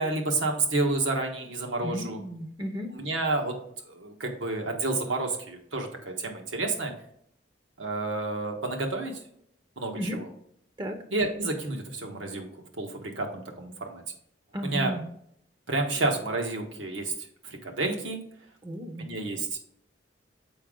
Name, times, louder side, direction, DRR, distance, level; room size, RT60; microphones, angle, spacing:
voice 1, 0.0-2.2 2.9-3.5 3.8-6.9 7.8-9.2 9.8-10.3 11.1-12.5 12.8-14.0 14.6-14.9 15.7-17.1 17.4-18.2 19.0-19.6, right 2 dB, 80° right, 2 dB, 1.4 m, -30 dB
voice 2, 1.8-2.9 10.0-10.2 10.8-11.0 14.5-15.0 18.6-19.1, equal, 25° right, 6 dB, 0.7 m, -34 dB
7.0 x 5.1 x 3.7 m, 0.69 s
head